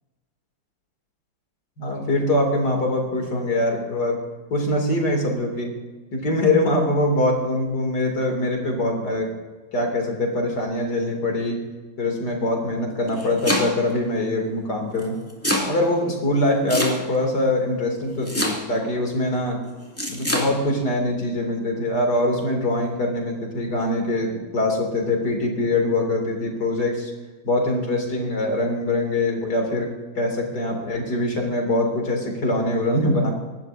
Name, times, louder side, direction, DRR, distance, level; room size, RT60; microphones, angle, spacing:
voice 1, 1.8-4.2 4.5-5.7 6.1-9.3 9.7-11.6 12.0-15.2 15.7-19.6 20.1-27.1 27.4-33.3, left 1 dB, 60° left, 1 dB, 3.2 m, -23 dB
Domestic sounds home sounds, 12.9-14.0 15.0-15.7 16.7-17.3 18.3-18.9 20.0-20.5, left 1 dB, 5° left, 2.2 m, -24 dB
24.5 x 12.0 x 2.6 m, 1.3 s
omnidirectional pair, 2.0 m